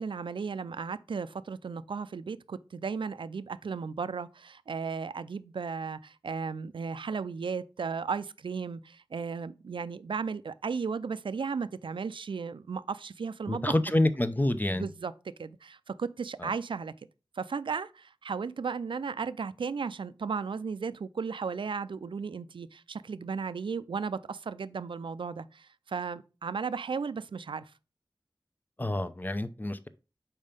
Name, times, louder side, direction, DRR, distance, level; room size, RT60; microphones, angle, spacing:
voice 1, 0.0-13.7 14.7-15.1 15.4-16.9 17.4-27.7, right 5 dB, 85° right, 0.4 m, -35 dB
voice 2, 13.5-14.9 16.4-16.5 28.8-29.9, left 1 dB, 20° left, 0.7 m, -28 dB
5.4 x 4.4 x 5.1 m
wide cardioid pair, 50°, 8 cm